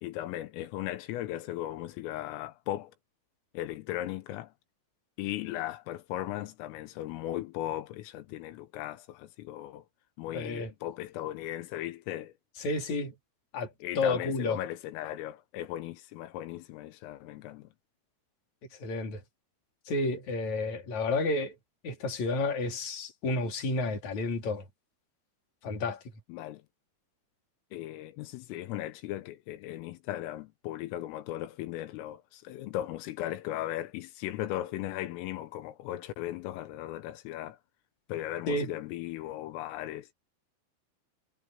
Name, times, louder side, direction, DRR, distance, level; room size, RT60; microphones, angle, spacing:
voice 1, 0.0-2.9 3.6-4.5 5.2-9.9 10.2-12.3 13.8-17.7 26.3-26.6 27.7-37.6 38.1-40.1, left 14 dB, 85° left, 3.7 m, -37 dB
voice 2, 10.3-10.7 12.6-13.1 13.5-13.7 14.0-14.6 18.8-19.2 19.9-21.5 21.8-24.6 25.6-26.0 38.5-38.7, left 3 dB, 40° left, 4.3 m, -30 dB
omnidirectional pair, 5.8 m